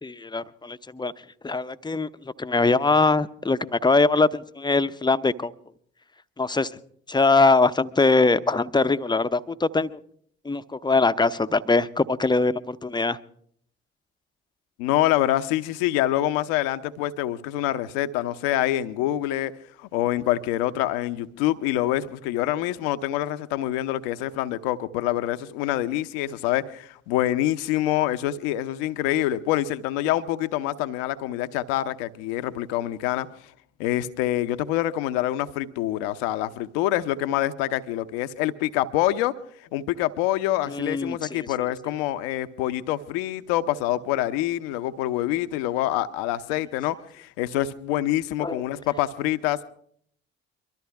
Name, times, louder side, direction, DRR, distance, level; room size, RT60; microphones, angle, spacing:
voice 1, 0.0-1.1 1.4-2.1 2.4-5.5 6.4-6.7 7.1-10.0 10.4-13.2 40.7-41.5 48.4-48.6, left 3 dB, 15° left, 0.7 m, -22 dB
voice 2, 14.8-19.5 19.8-33.3 33.8-39.3 39.7-49.6, left 13 dB, 70° left, 0.8 m, -26 dB
23.5 x 13.0 x 3.5 m
figure-of-eight pair, 45°, 31 cm